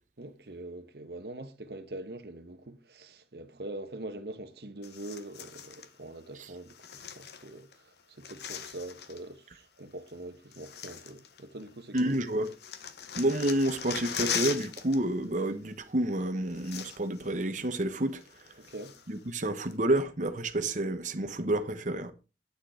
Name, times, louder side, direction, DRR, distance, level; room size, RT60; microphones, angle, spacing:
voice 1, 0.2-12.1 18.6-19.0, right 1 dB, 65° right, 1.2 m, -43 dB
sound 1, 4.8-5.9 6.7-7.7 8.0-9.3 10.1-10.2 10.5-11.7 12.0-15.0 15.2-15.5 16.2-16.3 16.5-17.3 17.6-17.7 18.2-19.2 19.7-19.8, left 8 dB, 70° left, 1.1 m, -39 dB
voice 2, 11.9-12.5 13.2-18.2 19.1-22.1, right 1 dB, 45° right, 1.1 m, -29 dB
9.8 x 6.5 x 4.9 m
head